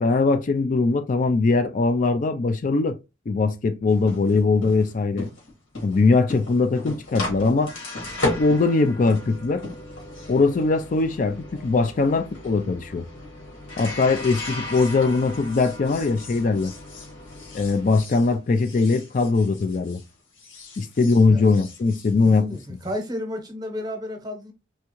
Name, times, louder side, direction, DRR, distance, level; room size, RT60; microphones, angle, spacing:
voice 1, 0.0-3.0 3.3-5.3 5.8-7.7 8.2-9.6 10.3-13.0 13.8-16.7 17.5-20.0 20.8-22.6, left 3 dB, 40° left, 0.4 m, -21 dB
sound 1, 3.9-20.1 20.4-23.0, left 2 dB, 85° left, 2.6 m, -36 dB
voice 2, 22.2-24.5, left 1 dB, 20° right, 0.9 m, -32 dB
4.3 x 3.6 x 3.0 m
head